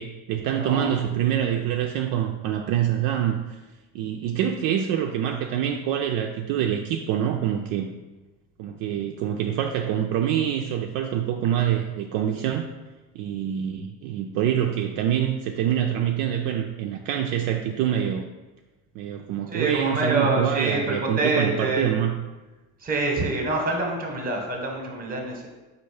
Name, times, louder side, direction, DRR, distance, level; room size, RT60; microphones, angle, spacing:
voice 1, 0.0-3.6 3.9-7.9 8.6-12.7 13.1-18.3 18.9-22.1, right 10 dB, 60° right, 3 dB, 0.5 m, -25 dB
voice 2, 0.6-1.0 19.5-21.9 22.8-25.5, right 2 dB, 25° right, 1 dB, 1.0 m, -26 dB
4.3 x 2.5 x 4.8 m, 1.1 s
supercardioid pair, 110°, 38 cm